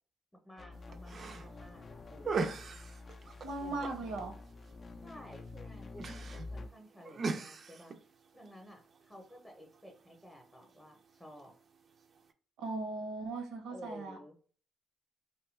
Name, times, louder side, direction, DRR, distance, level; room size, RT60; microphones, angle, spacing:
voice 1, 0.4-2.6 3.6-4.1 5.0-8.0 8.3-11.5 13.7-14.3, equal, 10° left, 2 dB, 0.6 m, -53 dB
sound 1, 0.6-6.7, left 3 dB, 40° left, 0.3 m, -48 dB
sound 2, 0.7-12.3, right 4 dB, 50° right, 0.4 m, -43 dB
voice 2, 3.4-4.3 12.6-14.2, right 3 dB, 85° right, 4 dB, 0.7 m, -38 dB
2.6 x 2.3 x 3.1 m, 0.42 s
cardioid pair, 90°, 0 cm